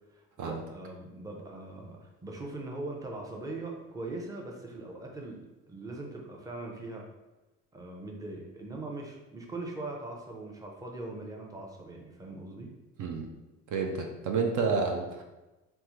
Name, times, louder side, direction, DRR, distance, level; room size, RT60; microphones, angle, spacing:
voice 1, 0.2-5.4 5.7-7.1 7.7-12.7, right 2 dB, 10° right, 0 dB, 0.6 m, -41 dB
voice 2, 13.7-15.2, right 4 dB, 55° right, 2 dB, 0.6 m, -29 dB
3.3 x 2.1 x 2.9 m, 1.1 s
supercardioid pair, 65°, 36 cm